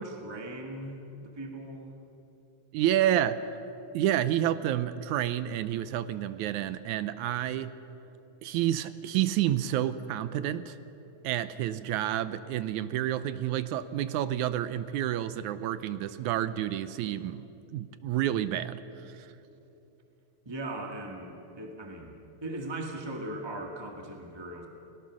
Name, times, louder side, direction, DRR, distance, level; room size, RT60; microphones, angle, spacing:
voice 1, 0.0-1.9 20.4-22.1 22.4-24.7, right 1 dB, 10° right, 1 dB, 1.3 m, -39 dB
voice 2, 2.7-3.4 3.9-7.7 8.4-10.8 11.2-17.4 17.7-18.8, right 12 dB, 80° right, 13 dB, 2.1 m, -29 dB
29.5 x 18.5 x 6.3 m, 3.0 s
omnidirectional pair, 3.5 m